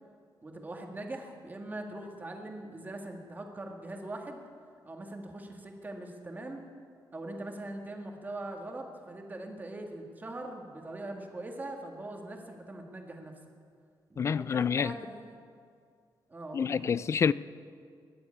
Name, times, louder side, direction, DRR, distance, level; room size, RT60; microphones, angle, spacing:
voice 1, 0.4-4.4 4.8-6.6 7.1-13.3 14.1-15.4 16.3-17.1, right 2 dB, 20° right, 1.9 m, -42 dB
voice 2, 14.2-14.9 16.5-17.3, left 6 dB, 35° left, 0.3 m, -27 dB
21.5 x 7.8 x 8.5 m
wide cardioid pair, 145°, 8 cm